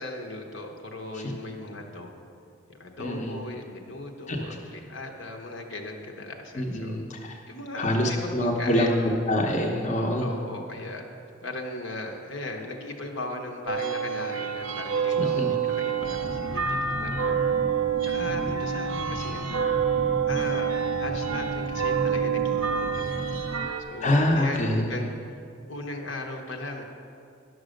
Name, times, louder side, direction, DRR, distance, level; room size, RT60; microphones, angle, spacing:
voice 1, 0.0-2.1 2.7-7.0 7.5-9.2 10.2-11.0 11.4-17.4 18.0-19.6 20.2-20.7 21.0-23.1 23.8-24.6 24.9-25.1 25.7-26.8, left 2 dB, 65° left, 2 dB, 1.1 m, -37 dB
voice 2, 3.0-3.4 4.3-4.6 6.6-7.4 7.8-10.3 15.2-15.5 24.0-24.9, left 1 dB, 35° left, 0 dB, 0.9 m, -25 dB
sound 1, 13.7-23.8, right 7 dB, 85° right, 0.7 m, -27 dB
sound 2, 16.0-23.7, right 2 dB, 25° right, 0.3 m, -36 dB
10.5 x 6.3 x 6.5 m, 2.4 s
head